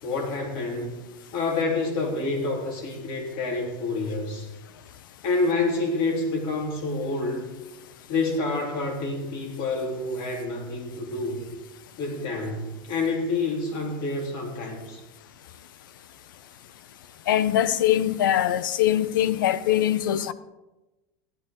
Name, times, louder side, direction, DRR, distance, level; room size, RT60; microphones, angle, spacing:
voice 1, 0.0-1.0 1.3-4.5 5.2-7.4 8.1-11.4 12.0-15.0, left 3 dB, 55° left, 3.5 m, -28 dB
voice 2, 17.3-20.3, left 11 dB, 85° left, 0.7 m, -22 dB
15.5 x 11.0 x 3.8 m
supercardioid pair, 130°, 11 cm